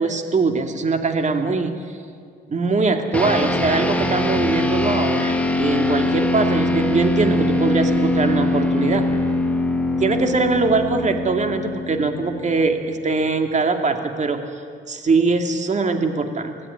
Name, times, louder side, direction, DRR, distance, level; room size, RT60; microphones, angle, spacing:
voice 1, 0.0-1.8 2.5-9.0 10.0-14.4 14.9-16.5, right 3 dB, 35° right, 5 dB, 2.6 m, -21 dB
sound 1, 3.1-12.8, left 2 dB, 5° left, 2.5 m, -22 dB
25.0 x 17.0 x 10.0 m, 2.1 s
cardioid pair, 90°, 20 cm